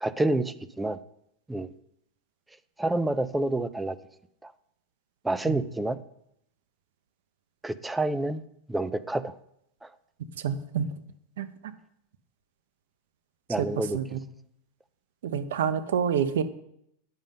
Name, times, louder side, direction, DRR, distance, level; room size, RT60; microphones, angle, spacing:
voice 1, 0.0-1.0 1.5-1.7 2.8-4.0 4.4-4.5 5.2-6.0 7.6-8.4 8.7-9.3 13.5-14.0, right 2 dB, 5° right, 15 dB, 0.4 m, -28 dB
voice 2, 10.4-10.9 11.4-11.5 13.6-13.7 13.9-14.2 15.2-16.4, right 8 dB, 85° right, 13 dB, 0.7 m, -27 dB
8.9 x 5.6 x 5.3 m, 0.74 s
supercardioid pair, 150°, 0 cm